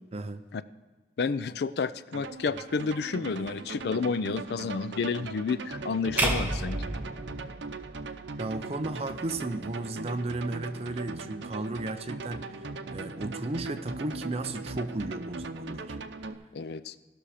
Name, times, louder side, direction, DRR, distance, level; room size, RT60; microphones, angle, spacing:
voice 1, 0.1-0.4 8.4-12.7 12.9-16.0, right 2 dB, 35° right, 9 dB, 0.6 m, -34 dB
voice 2, 1.2-6.8 16.5-16.9, left 4 dB, 60° left, 15 dB, 0.4 m, -30 dB
sound 1, 2.1-16.3, right 3 dB, 85° right, 0.7 m, -40 dB
sound 2, 6.2-8.4, right 1 dB, 10° right, 1.0 m, -31 dB
17.0 x 6.2 x 4.9 m, 1.4 s
head